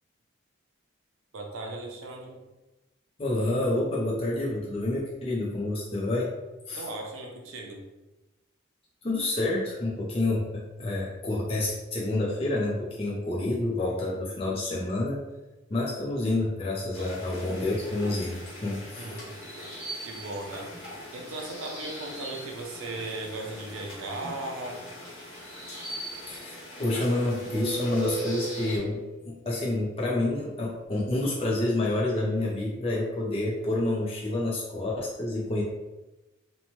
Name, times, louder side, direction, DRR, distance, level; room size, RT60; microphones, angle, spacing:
voice 1, 1.3-2.4 6.7-7.8 17.0-17.1 19.0-19.6 20.0-20.7 21.1-24.8, right 2 dB, 80° right, 1 dB, 0.6 m, -37 dB
voice 2, 3.2-6.3 6.7-6.9 9.0-15.2 15.7-19.1 26.3-35.6, left 2 dB, 30° left, -5 dB, 0.4 m, -28 dB
sound 1, 16.9-28.8, equal, 90° left, 1.2 m, -41 dB
sound 2, 26.4-29.4, right 5 dB, 35° right, 0.4 m, -37 dB
2.8 x 2.1 x 2.9 m, 1.0 s
head